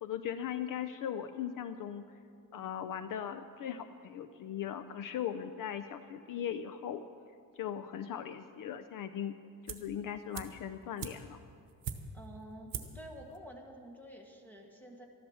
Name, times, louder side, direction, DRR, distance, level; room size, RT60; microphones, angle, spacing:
voice 1, 0.0-2.1 2.5-7.0 7.5-9.4 9.6-11.4, left 9 dB, 60° left, 11 dB, 0.5 m, -39 dB
sound 1, 9.7-10.0 10.3-12.3 12.7-13.1 13.3-13.4, right 8 dB, 60° right, 1.0 m, -42 dB
voice 2, 12.1-15.1, equal, 5° left, 1 dB, 1.5 m, -49 dB
14.0 x 11.5 x 6.3 m, 2.3 s
cardioid pair, 155°, 38 cm